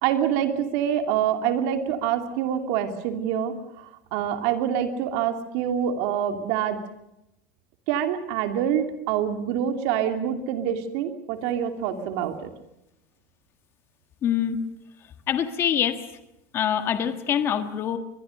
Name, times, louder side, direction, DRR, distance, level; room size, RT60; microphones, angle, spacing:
voice 1, 0.0-6.8 7.9-12.5, right 9 dB, 50° right, 6 dB, 2.8 m, -26 dB
voice 2, 14.2-14.6 15.3-16.0 16.5-18.0, left 9 dB, 25° left, 9 dB, 1.5 m, -24 dB
23.5 x 21.0 x 6.5 m, 0.87 s
supercardioid pair, 175°, 9 cm